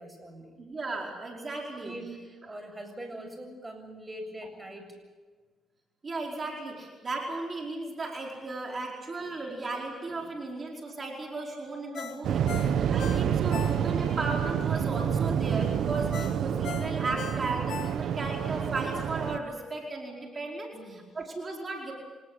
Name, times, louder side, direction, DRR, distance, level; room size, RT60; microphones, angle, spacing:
voice 1, 0.0-0.6 1.8-5.0 20.7-21.1, right 1 dB, 15° right, 5 dB, 7.4 m, -44 dB
voice 2, 0.6-1.9 2.5-2.6 6.0-21.9, right 3 dB, 35° right, -1 dB, 4.9 m, -35 dB
Ringtone, 11.9-14.2 14.6-14.7 16.1-18.4 18.8-18.9, left 9 dB, 70° left, 1.3 m, -40 dB
Waves surf, 12.2-19.4, right 8 dB, 70° right, 1.4 m, -28 dB
27.0 x 19.0 x 8.3 m, 1.4 s
cardioid pair, 90°, 0 cm